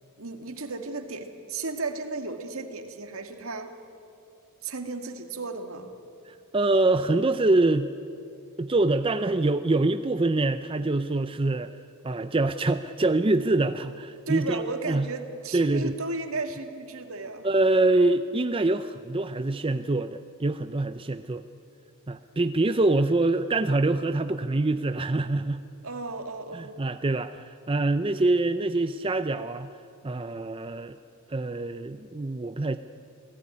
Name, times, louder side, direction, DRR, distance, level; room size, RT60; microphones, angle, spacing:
voice 1, 0.2-3.7 4.6-5.9 14.3-17.4 23.9-24.2 25.8-26.7, right 3 dB, 70° right, 6 dB, 2.0 m, -34 dB
voice 2, 6.3-7.9 8.6-11.7 12.0-15.1 15.5-15.9 17.4-21.4 22.1-25.6 26.5-29.7 30.0-31.0 31.3-32.8, right 2 dB, 25° right, 10 dB, 0.5 m, -25 dB
28.5 x 17.5 x 9.8 m, 2.6 s
head